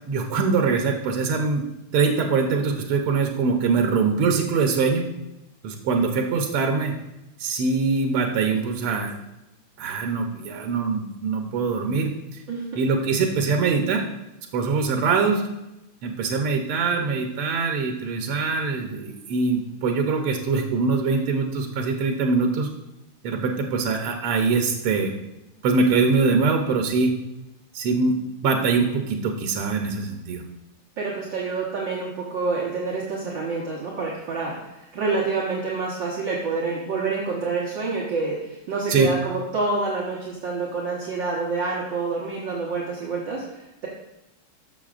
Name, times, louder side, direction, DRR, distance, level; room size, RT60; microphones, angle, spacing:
voice 1, 0.1-1.6 1.9-5.1 5.6-7.0 7.4-9.1 9.8-12.1 12.8-14.0 14.5-15.4 16.0-22.7 23.2-25.1 25.6-27.1 27.7-30.4 38.9-39.1, right 4 dB, 85° right, 3 dB, 1.8 m, -23 dB
voice 2, 31.0-43.9, right 3 dB, 60° right, -5 dB, 1.9 m, -27 dB
13.5 x 6.5 x 2.5 m, 0.94 s
omnidirectional pair, 2.4 m